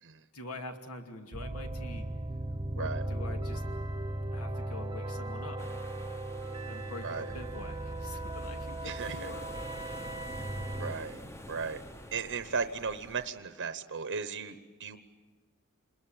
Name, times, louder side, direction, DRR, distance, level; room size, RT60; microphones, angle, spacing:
voice 1, 0.3-2.1 2.7-3.6 4.3-5.6 6.7-9.5, left 2 dB, 80° left, 4 dB, 2.6 m, -45 dB
sound 1, 1.3-10.9, right 1 dB, 20° right, 1.0 m, -37 dB
sound 2, 5.6-13.3, left 1 dB, 10° left, 0.9 m, -48 dB
voice 2, 7.0-7.3 8.8-9.3 10.3-10.5 10.8-11.2 11.5-11.8 12.1-15.0, right 5 dB, 55° right, 10 dB, 0.9 m, -36 dB
27.5 x 21.5 x 9.0 m, 1.4 s
head